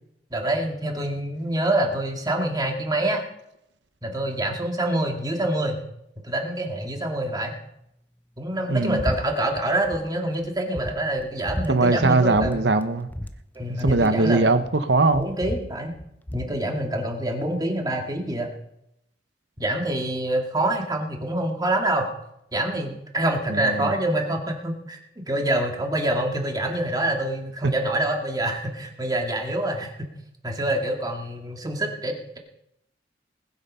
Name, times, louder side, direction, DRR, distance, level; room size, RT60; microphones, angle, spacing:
voice 1, 0.3-3.2 4.0-5.8 6.2-7.6 8.4-12.6 13.6-14.5 15.1-15.9 16.3-18.5 19.6-22.1 22.5-25.0 25.3-30.1 30.4-32.4, right 1 dB, 20° right, 2 dB, 2.2 m, -26 dB
voice 2, 8.7-9.0 11.7-13.1 13.8-15.3 23.5-23.9, right 3 dB, 80° right, 10 dB, 0.9 m, -20 dB
sound 1, 9.0-9.2 9.5-10.0 10.4-10.5 10.8-11.7 12.3-12.6 12.8-12.9 13.1-14.8 15.1-16.5, left 1 dB, 10° left, 0.7 m, -32 dB
20.0 x 8.1 x 5.6 m, 0.78 s
head